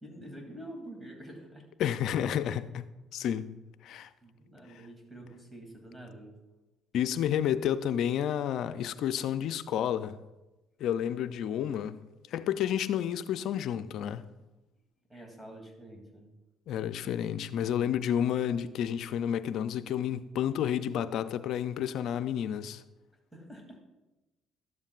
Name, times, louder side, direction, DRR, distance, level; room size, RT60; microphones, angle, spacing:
voice 1, 0.0-1.6 4.2-6.3 15.1-16.3 23.3-23.8, right 1 dB, 5° right, 2.7 m, -47 dB
voice 2, 1.8-3.6 3.8-4.1 4.7-4.8 6.9-10.2 10.8-12.0 12.3-14.2 16.7-22.8, left 9 dB, 70° left, 0.4 m, -30 dB
12.5 x 7.3 x 2.5 m
supercardioid pair, 75°, 0 cm